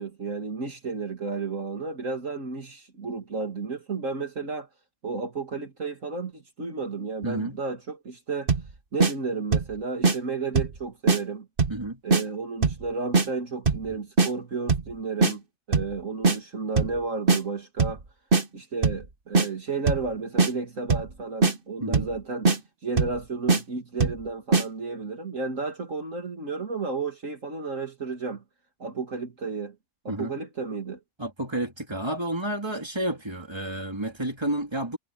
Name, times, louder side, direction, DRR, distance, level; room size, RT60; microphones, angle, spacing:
voice 1, 0.0-4.7 5.0-8.5 8.9-11.5 12.0-15.4 15.7-18.0 18.5-28.4 28.8-29.7 30.0-31.0, right 4 dB, 60° right, 2.8 m, -32 dB
voice 2, 7.2-7.6 11.7-12.0 21.8-22.1 30.1-30.3 31.2-35.0, right 1 dB, 15° right, 3.8 m, -30 dB
sound 1, 8.5-8.7 9.0-9.1 9.5-9.7 10.0-10.2 10.6-10.8 11.1-11.2 11.6-11.8 12.1-12.2 12.6-12.8 13.1-13.3 13.7-13.9 14.2-14.3 14.7-14.9 15.2-15.3 15.7-16.0 16.2-16.4 16.8-17.0 17.3-17.4 17.8-18.0 18.3-18.4 18.8-19.1 19.4-19.5 19.9-20.1 20.4-20.5 20.9-21.1 21.4-21.5 21.9-22.2 22.5-22.6 23.0-23.2 23.5-23.6 24.0-24.2 24.5-24.7, right 4 dB, 40° right, 1.7 m, -21 dB
omnidirectional pair, 1.5 m